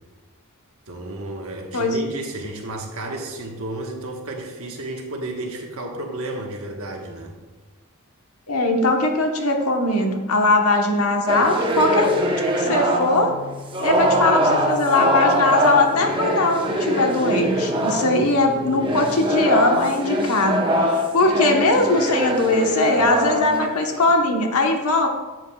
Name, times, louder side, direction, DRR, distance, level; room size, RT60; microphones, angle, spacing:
voice 1, 0.9-7.3, right 2 dB, 70° right, 1 dB, 1.3 m, -32 dB
voice 2, 8.5-12.1 12.5-13.3 13.8-25.1, left 2 dB, 85° left, 3 dB, 1.1 m, -20 dB
sound 1, 11.3-13.3 13.7-18.3 18.7-24.1, equal, 25° right, 0.9 m, -22 dB
sound 2, 11.7-19.6, left 3 dB, 60° left, 2.6 m, -37 dB
10.5 x 7.3 x 2.3 m, 1.2 s
head